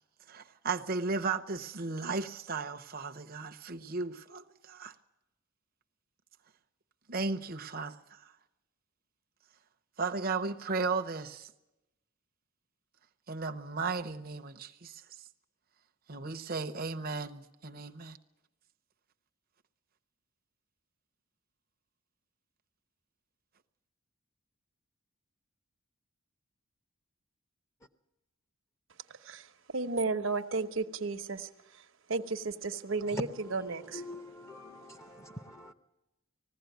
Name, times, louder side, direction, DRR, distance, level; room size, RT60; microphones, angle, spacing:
voice 1, 0.3-4.9 7.1-8.2 10.0-11.5 13.3-15.0 16.1-18.2, right 4 dB, 45° right, 0.8 m, -35 dB
voice 2, 29.2-31.5 31.7-31.8 32.1-34.0, right 3 dB, 65° right, 1.0 m, -33 dB
voice 3, 33.9-35.7, left 1 dB, 15° left, 0.8 m, -42 dB
19.5 x 15.5 x 9.3 m
head